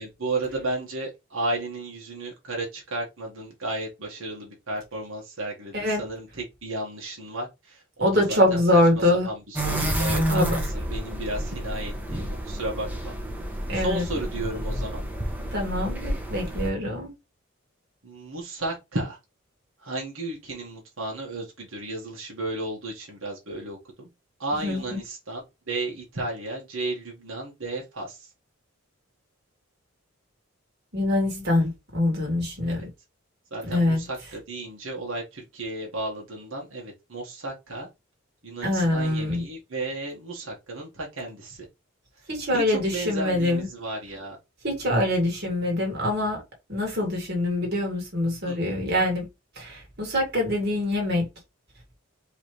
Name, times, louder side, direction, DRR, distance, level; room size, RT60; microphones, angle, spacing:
voice 1, 0.0-8.6 9.2-13.1 13.7-15.0 18.0-19.2 19.8-24.1 24.4-28.3 32.7-32.9 33.5-37.9 38.4-41.6 42.5-44.4 48.4-48.6, right 2 dB, 70° right, 1.6 m, -33 dB
voice 2, 8.0-9.3 10.3-10.5 13.7-14.0 15.5-17.1 24.6-25.0 30.9-32.8 33.6-34.0 38.6-39.4 42.3-43.7 44.6-46.4 46.7-49.3 49.6-51.3, left 1 dB, 50° right, 2.2 m, -24 dB
sound 1, 9.6-16.7, equal, 10° right, 0.8 m, -29 dB
4.9 x 3.3 x 3.1 m
head